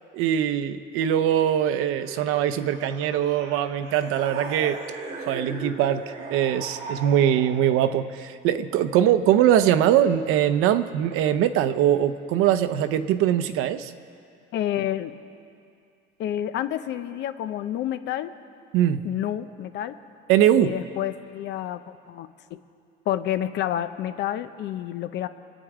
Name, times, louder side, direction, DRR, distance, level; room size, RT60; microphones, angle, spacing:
voice 1, 0.1-4.8 5.2-13.9 18.7-19.0 20.3-20.8, right 10 dB, 85° right, 11 dB, 0.8 m, -22 dB
sound 1, 2.0-7.8, right 3 dB, 30° right, 1.9 m, -38 dB
voice 2, 14.5-15.1 16.2-18.3 19.0-20.0 20.5-22.6 23.1-25.3, left 11 dB, 55° left, 12 dB, 0.7 m, -29 dB
27.5 x 9.1 x 4.9 m, 2.4 s
cardioid pair, 175°, 21 cm